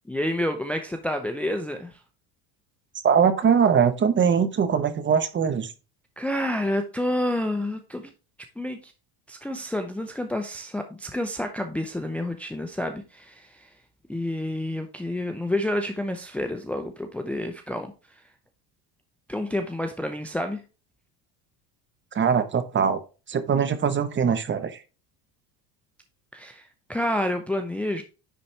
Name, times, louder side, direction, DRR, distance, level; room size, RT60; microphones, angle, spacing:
voice 1, 0.1-2.0 6.2-8.1 8.6-8.9 9.3-13.7 14.1-17.9 19.3-20.6 26.3-28.0, left 1 dB, 5° left, 6 dB, 0.6 m, -29 dB
voice 2, 3.0-5.7 22.1-23.0 23.3-24.8, right 7 dB, 25° right, 12 dB, 1.0 m, -22 dB
10.0 x 4.1 x 3.2 m, 0.32 s
cardioid pair, 130°, 43 cm